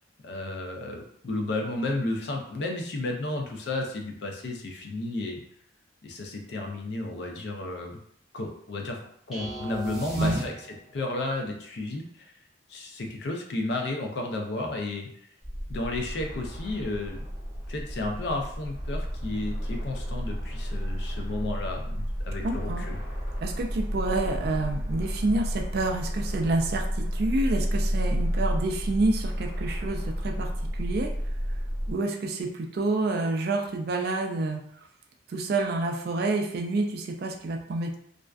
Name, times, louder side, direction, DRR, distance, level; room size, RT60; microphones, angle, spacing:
voice 1, 0.2-5.4 6.0-8.0 8.3-9.0 9.3-12.3 12.7-15.1 15.7-17.2 17.7-23.0, left 2 dB, 60° left, 2 dB, 0.4 m, -32 dB
sound 1, 9.3-11.0, right 1 dB, ahead, 0.6 m, -37 dB
sound 2, 15.4-31.9, equal, 25° left, 0.9 m, -31 dB
voice 2, 22.4-22.9 23.4-31.1 31.9-34.6 35.3-38.0, right 2 dB, 50° right, 2 dB, 0.3 m, -28 dB
2.4 x 2.2 x 2.3 m, 0.68 s
head